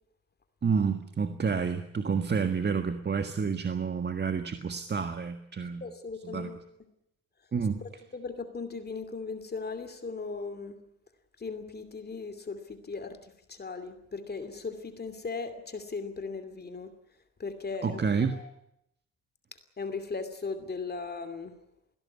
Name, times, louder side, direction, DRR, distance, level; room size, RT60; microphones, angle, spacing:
voice 1, 0.6-5.8 6.2-6.5 7.5-7.8 17.8-18.3, right 5 dB, 35° right, 8 dB, 1.6 m, -29 dB
voice 2, 5.8-6.6 7.8-10.8 11.4-16.9 17.4-18.0 18.3-18.5 19.8-21.6, left 4 dB, 35° left, 9 dB, 2.7 m, -38 dB
21.0 x 17.0 x 9.7 m, 0.79 s
cardioid pair, 90°, 30 cm